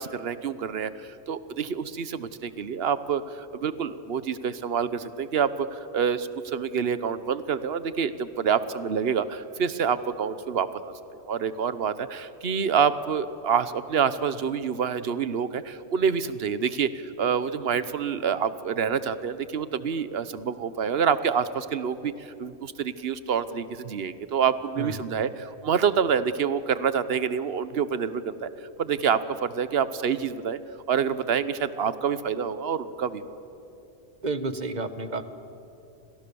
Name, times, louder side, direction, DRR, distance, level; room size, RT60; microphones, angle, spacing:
voice 1, 0.0-28.5 28.8-30.6 30.9-33.2, right 7 dB, 65° right, 13 dB, 1.2 m, -27 dB
voice 2, 34.2-35.2, right 3 dB, 40° right, 11 dB, 1.3 m, -30 dB
30.0 x 27.0 x 7.0 m, 2.8 s
omnidirectional pair, 1.1 m